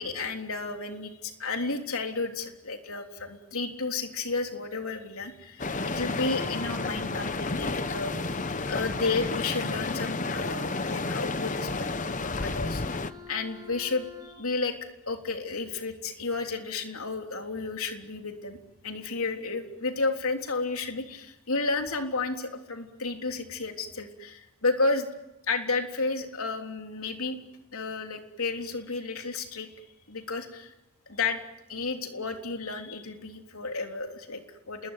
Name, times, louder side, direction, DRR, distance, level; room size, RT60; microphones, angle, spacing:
voice 1, 0.0-8.2 8.7-11.9 12.4-13.0 13.3-14.8 15.1-18.6 18.8-25.1 25.5-27.4 27.7-29.7 30.1-30.7 31.1-31.4 31.7-34.9, left 3 dB, 80° left, 4 dB, 3.6 m, -32 dB
sound 1, 5.6-13.1, left 3 dB, 35° left, 1.0 m, -31 dB
Wind instrument woodwind instrument, 6.3-14.5, left 4 dB, 15° right, 4.5 m, -47 dB
28.5 x 21.5 x 9.3 m, 0.92 s
head